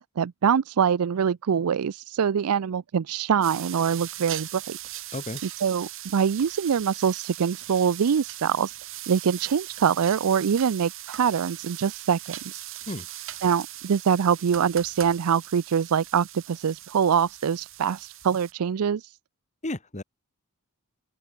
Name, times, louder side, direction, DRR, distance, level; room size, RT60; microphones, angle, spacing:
voice 1, 0.2-4.8 5.4-8.7 9.1-12.4 13.4-19.0, right 7 dB, 80° right, 0.4 m, -24 dB
sound 1, 3.4-18.5, right 14 dB, 65° right, 3.3 m, -40 dB
voice 2, 19.6-20.0, left 1 dB, 35° left, 2.2 m, -32 dB
open air
head